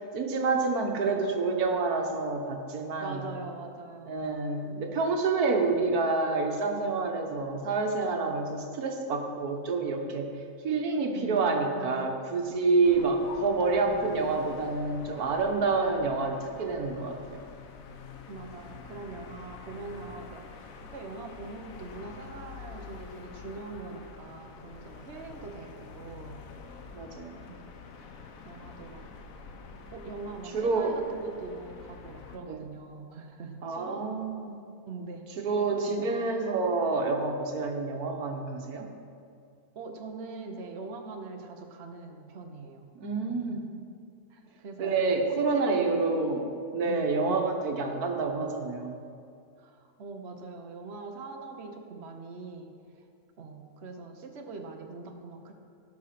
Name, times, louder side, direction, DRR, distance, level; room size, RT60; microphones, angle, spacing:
voice 1, 0.1-3.3 4.1-10.3 10.6-17.4 26.9-27.4 30.5-31.0 32.5-32.6 33.6-34.6 35.4-38.9 43.0-43.6 44.8-49.0, right 3 dB, 90° right, 3 dB, 1.6 m, -28 dB
voice 2, 3.0-4.3 11.1-12.1 18.3-26.4 27.5-27.6 28.4-29.1 29.9-34.0 34.9-36.2 39.7-42.9 43.3-43.6 44.3-46.0 46.8-47.5 49.6-52.7 53.4-55.5, right 3 dB, 50° right, 3 dB, 1.2 m, -42 dB
sound 1, 12.8-32.4, left 5 dB, 70° left, 1.3 m, -47 dB
17.0 x 6.2 x 5.9 m, 2.4 s
omnidirectional pair, 1.6 m